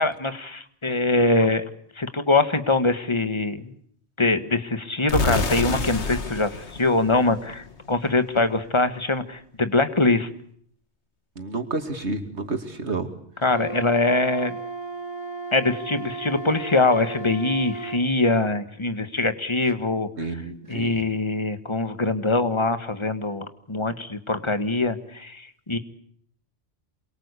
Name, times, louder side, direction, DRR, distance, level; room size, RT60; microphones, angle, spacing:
voice 1, 0.0-1.7 2.0-3.7 4.2-10.3 13.4-14.6 15.5-20.1 20.7-25.8, left 2 dB, 25° left, 10 dB, 1.7 m, -23 dB
sound 1, 5.1-7.9, left 3 dB, 85° left, 2.0 m, -28 dB
voice 2, 11.4-13.1 20.2-21.0, right 3 dB, 90° right, 7 dB, 2.9 m, -30 dB
Wind instrument woodwind instrument, 13.4-18.0, right 3 dB, 25° right, 3.4 m, -35 dB
28.0 x 22.5 x 8.4 m, 0.65 s
omnidirectional pair, 1.1 m